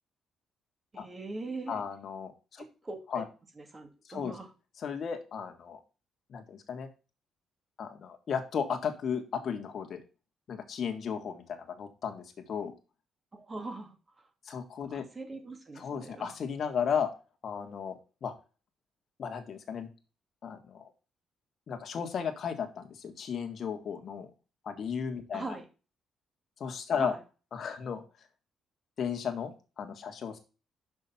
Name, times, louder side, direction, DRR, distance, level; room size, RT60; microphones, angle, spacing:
voice 1, 0.9-1.8 2.6-3.2 3.6-4.5 13.3-14.3 14.9-16.4 25.3-25.7 26.9-27.2, right 3 dB, 30° right, 4 dB, 2.1 m, -41 dB
voice 2, 1.7-2.6 3.1-3.2 4.1-4.3 4.8-5.8 6.3-6.9 7.8-10.0 10.5-12.7 14.5-15.0 15.8-17.1 17.4-18.3 19.2-19.9 20.4-20.9 21.7-24.3 24.7-25.5 26.6-27.1 27.5-28.0 29.0-30.4, left 7 dB, 55° left, 5 dB, 1.7 m, -34 dB
6.2 x 6.0 x 5.6 m, 0.33 s
cardioid pair, 90°, 0 cm